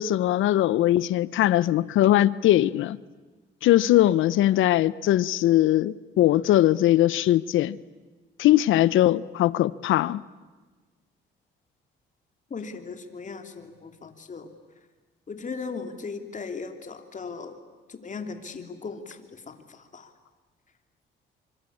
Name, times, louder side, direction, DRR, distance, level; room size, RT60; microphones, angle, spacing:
voice 1, 0.0-3.0 3.6-7.8 8.4-10.2, left 14 dB, 80° left, 0.8 m, -21 dB
voice 2, 12.5-14.5 15.3-17.6 17.9-20.1, left 4 dB, 40° left, 3.1 m, -38 dB
25.5 x 25.0 x 8.6 m
cardioid pair, 90°, 20 cm